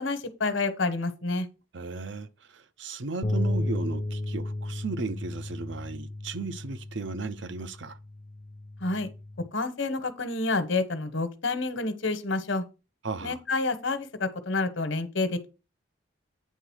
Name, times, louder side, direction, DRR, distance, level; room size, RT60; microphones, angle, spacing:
voice 1, 0.0-1.5 8.8-9.1 9.5-12.6 13.2-15.5, left 3 dB, 70° left, 1.2 m, -29 dB
voice 2, 1.7-8.0 13.0-13.4, right 3 dB, 65° right, 0.7 m, -35 dB
sound 1, 3.2-9.5, left 1 dB, 30° left, 0.6 m, -33 dB
9.2 x 3.9 x 6.3 m
head